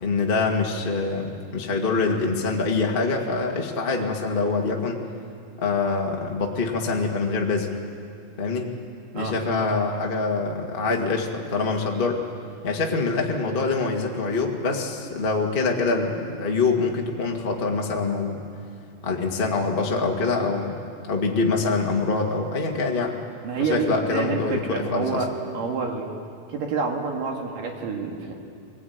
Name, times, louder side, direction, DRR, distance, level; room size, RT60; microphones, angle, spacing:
voice 1, 0.0-5.0 5.6-7.7 8.4-8.7 9.1-12.2 12.6-18.5 19.0-20.8 21.1-23.2 23.6-25.2, left 4 dB, 25° left, 1 dB, 1.1 m, -25 dB
voice 2, 23.4-26.1 26.5-28.3, right 4 dB, 65° right, 2 dB, 3.6 m, -28 dB
23.0 x 19.5 x 9.4 m, 2.4 s
omnidirectional pair, 4.2 m